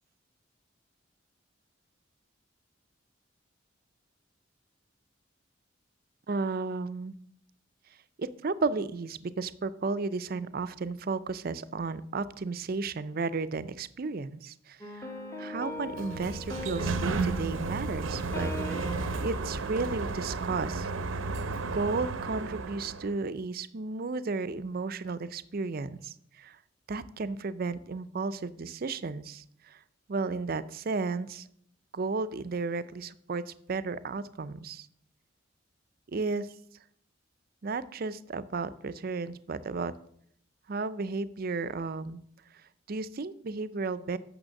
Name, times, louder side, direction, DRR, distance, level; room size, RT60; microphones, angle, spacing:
voice 1, 6.3-7.1 8.2-15.1 15.4-18.5 19.2-20.9 21.6-26.6 26.9-29.8 30.1-31.5 31.9-34.9 36.1-36.5 37.6-39.9 40.7-42.2 42.9-44.2, right 3 dB, 50° right, 14 dB, 0.5 m, -33 dB
sound 1, 14.8-20.4, left 1 dB, 15° left, 0.9 m, -41 dB
Sliding door, 15.8-23.2, right 3 dB, 85° right, 0.7 m, -33 dB
8.9 x 6.5 x 6.4 m, 0.69 s
head